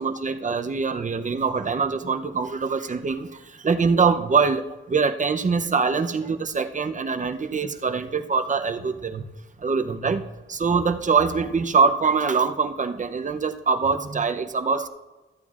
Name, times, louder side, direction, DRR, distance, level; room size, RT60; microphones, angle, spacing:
voice 1, 0.0-4.6 4.9-9.2 9.6-10.2 10.5-14.9, right 5 dB, 35° right, 8 dB, 0.7 m, -23 dB
14.0 x 9.0 x 2.4 m, 1.2 s
cardioid pair, 90°, 21 cm